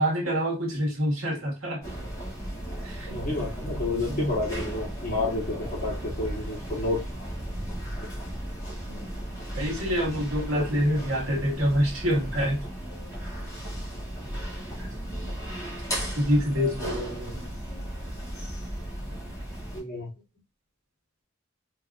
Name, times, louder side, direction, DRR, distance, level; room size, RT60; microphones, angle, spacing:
voice 1, 0.0-1.8 2.8-3.2 4.1-4.3 9.5-12.6 16.1-17.5, equal, 70° right, -2 dB, 1.8 m, -26 dB
sound 1, 1.8-19.8, equal, 15° left, 2.1 m, -35 dB
voice 2, 3.1-7.1 8.8-9.0 10.5-11.0 19.7-20.1, left 2 dB, 40° left, -5 dB, 2.4 m, -30 dB
4.4 x 3.3 x 2.4 m, 0.27 s
head